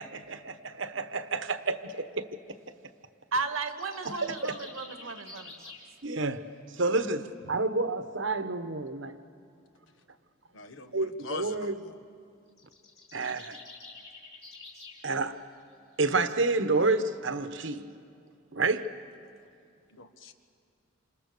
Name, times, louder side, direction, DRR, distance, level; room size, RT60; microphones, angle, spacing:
voice 1, 0.0-2.3 4.4-4.5 6.0-6.5 6.7-9.1 10.9-11.8 13.1-13.6 15.0-15.4 16.0-17.9 18.5-19.0, right 3 dB, 65° right, 1.2 m, -29 dB
voice 2, 3.3-5.7, right 3 dB, 90° right, 1.6 m, -34 dB
sound 1, 3.5-5.9 12.5-15.0, left 3 dB, 30° left, 3.7 m, -48 dB
voice 3, 10.5-12.0 19.9-20.3, left 4 dB, 70° left, 1.4 m, -43 dB
28.0 x 27.5 x 6.7 m
head